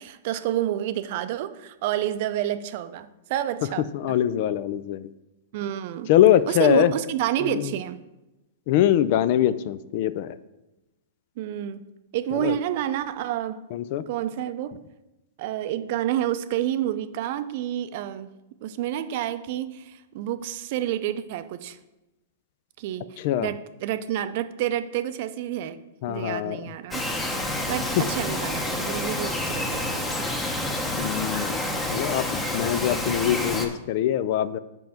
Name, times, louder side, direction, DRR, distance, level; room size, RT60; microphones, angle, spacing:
voice 1, 0.0-4.2 5.5-6.1 6.5-8.0 11.4-11.9 12.1-13.6 14.1-14.8 15.4-18.3 18.6-21.8 22.8-25.8 26.1-27.0 27.7-30.3, right 12 dB, 55° right, 11 dB, 0.5 m, -29 dB
voice 2, 3.9-5.0 6.1-6.9 7.5-7.7 8.7-10.3 12.3-12.6 13.7-14.0 23.2-23.5 26.0-26.6 30.9-31.6 31.9-34.6, left 11 dB, 55° left, 15 dB, 0.4 m, -23 dB
Bird vocalization bird call bird song, 26.9-33.7, left 1 dB, 10° left, 0.9 m, -28 dB
5.3 x 4.5 x 5.9 m, 0.98 s
hypercardioid pair, 120°, 0 cm